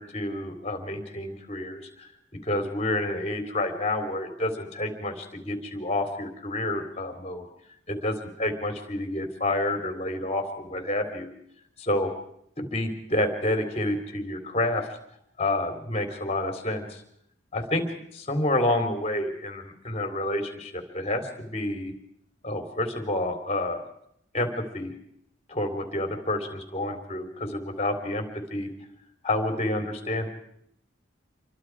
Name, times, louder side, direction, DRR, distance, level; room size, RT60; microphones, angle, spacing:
voice 1, 0.0-2.1 2.4-7.5 7.9-11.3 11.8-12.1 12.6-14.9 15.4-17.0 17.5-17.8 18.1-21.9 22.4-23.8 24.3-24.9 25.5-28.2 28.5-28.7 29.2-30.3, left 1 dB, 35° left, 6 dB, 3.6 m, -29 dB
27.5 x 23.5 x 4.8 m, 0.71 s
head